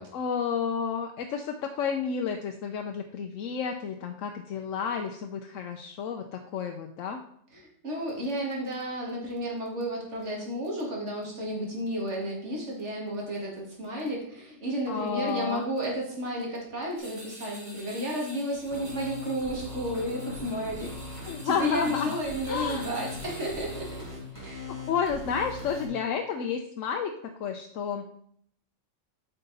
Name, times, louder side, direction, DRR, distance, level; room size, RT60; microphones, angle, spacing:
voice 1, 0.1-7.2 14.9-15.7 21.2-22.2 22.5-22.9 24.7-27.1 27.4-28.1, left 6 dB, 90° left, 4 dB, 1.0 m, -31 dB
voice 2, 7.5-23.9 24.4-24.7, equal, 65° right, -2 dB, 2.5 m, -32 dB
sound 1, 17.0-24.3, equal, 40° right, 2.1 m, -47 dB
sound 2, 18.5-25.9, left 3 dB, 15° left, 2.7 m, -40 dB
9.1 x 5.6 x 4.1 m, 0.66 s
omnidirectional pair, 1.3 m